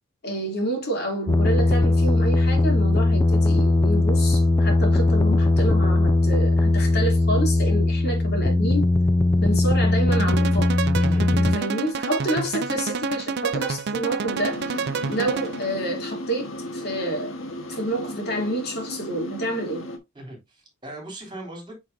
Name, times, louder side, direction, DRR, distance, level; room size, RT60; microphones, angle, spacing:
voice 1, 0.2-8.8 9.4-10.8 11.4-17.3 17.7-19.9, right 1 dB, 50° left, 3.0 m, -28 dB
sound 1, 1.3-11.6, left 2 dB, 15° left, 0.3 m, -19 dB
sound 2, 10.1-15.8, right 5 dB, 55° right, 0.5 m, -29 dB
sound 3, 14.3-20.0, left 1 dB, 70° left, 1.5 m, -35 dB
voice 2, 20.1-21.9, right 1 dB, 20° right, 3.2 m, -38 dB
8.5 x 4.7 x 2.7 m
head